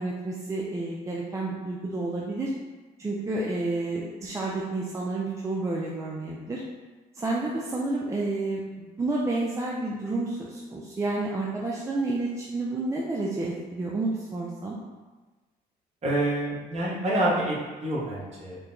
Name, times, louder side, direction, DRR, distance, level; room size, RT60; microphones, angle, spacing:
voice 1, 0.0-2.5 3.0-6.6 7.1-14.7, right 2 dB, 20° right, -4 dB, 0.5 m, -30 dB
voice 2, 16.0-18.6, right 1 dB, 40° right, -4 dB, 1.2 m, -27 dB
4.5 x 2.2 x 3.9 m, 1.3 s
cardioid pair, 110°, 17 cm